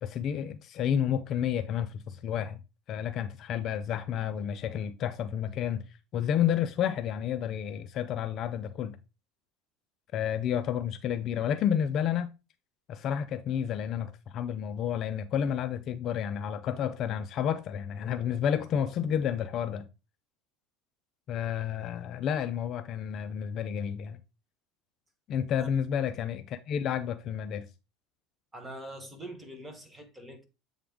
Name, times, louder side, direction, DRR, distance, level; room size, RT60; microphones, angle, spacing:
voice 1, 0.0-2.6 2.9-5.8 6.1-9.0 10.1-12.3 12.9-19.9 21.3-24.2 25.3-27.7, left 9 dB, 40° left, 0.4 m, -30 dB
voice 2, 28.5-30.4, right 1 dB, 10° right, 1.3 m, -43 dB
7.7 x 3.6 x 3.5 m
supercardioid pair, 140°, 0 cm